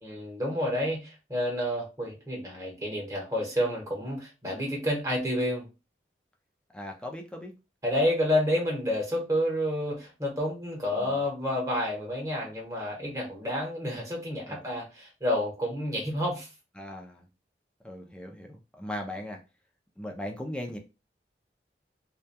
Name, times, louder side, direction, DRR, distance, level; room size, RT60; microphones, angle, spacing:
voice 1, 0.0-5.7 7.8-16.5, left 1 dB, 20° right, 1.0 m, -29 dB
voice 2, 6.7-7.5 11.0-11.2 14.5-14.6 16.8-17.3 17.8-19.4 20.0-20.8, left 1 dB, 5° left, 0.4 m, -38 dB
2.8 x 2.2 x 2.2 m
head